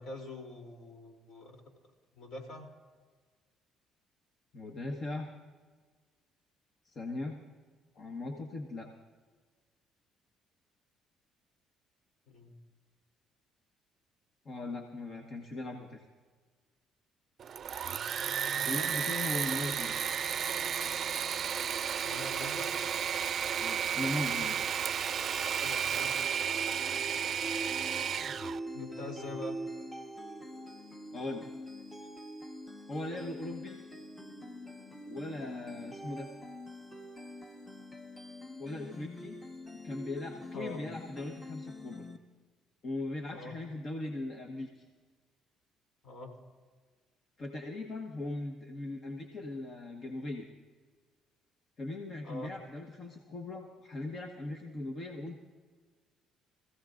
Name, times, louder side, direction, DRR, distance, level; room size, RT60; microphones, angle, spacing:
voice 1, 0.0-1.6 2.1-2.7 12.3-12.5 18.4-18.7 22.0-22.7 25.6-26.3 28.7-29.6 40.5-40.8 43.3-43.6 46.0-46.3 52.2-52.5, left 2 dB, 60° left, 2 dB, 3.1 m, -44 dB
voice 2, 4.5-5.3 6.8-7.4 7.9-8.9 14.4-16.1 18.7-20.0 23.6-24.6 31.1-31.5 32.9-33.8 35.1-36.3 38.6-39.4 39.8-42.1 42.8-44.8 47.4-50.5 51.8-55.4, left 2 dB, 45° left, 3 dB, 1.3 m, -39 dB
Engine / Mechanisms, 17.4-28.6, right 8 dB, 50° right, 0.4 m, -33 dB
sound 1, 26.2-42.2, equal, 10° left, 1.3 m, -44 dB
25.0 x 15.5 x 2.6 m, 1.5 s
cardioid pair, 90°, 0 cm